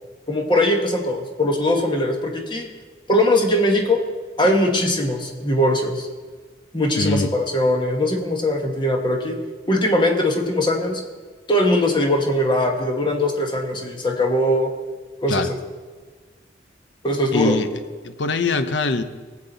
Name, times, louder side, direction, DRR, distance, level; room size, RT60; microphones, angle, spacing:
voice 1, 0.3-2.7 3.1-4.0 4.4-6.1 6.7-9.4 9.7-11.0 11.5-14.7 15.2-15.5 17.0-17.6, left 1 dB, 25° left, 2 dB, 1.3 m, -20 dB
voice 2, 7.0-7.3 15.3-15.5 17.3-19.0, left 3 dB, 80° left, 10 dB, 0.8 m, -23 dB
19.0 x 7.5 x 4.0 m, 1.4 s
head